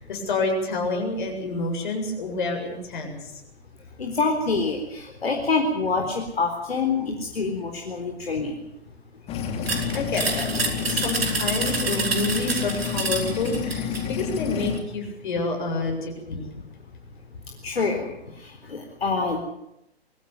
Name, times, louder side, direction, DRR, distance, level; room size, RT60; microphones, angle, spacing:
voice 1, 0.0-3.4 9.9-10.5 10.9-16.4, left 3 dB, 50° left, 3 dB, 7.6 m, -28 dB
voice 2, 4.0-8.5 17.6-18.1 18.4-19.4, left 4 dB, 65° left, 2 dB, 4.1 m, -26 dB
sound 1, 9.3-14.8, left 7 dB, 20° left, 3.0 m, -30 dB
sound 2, 9.7-14.1, right 3 dB, 65° right, 5.0 m, -28 dB
24.0 x 15.5 x 9.5 m, 0.84 s
figure-of-eight pair, 125°, 32 cm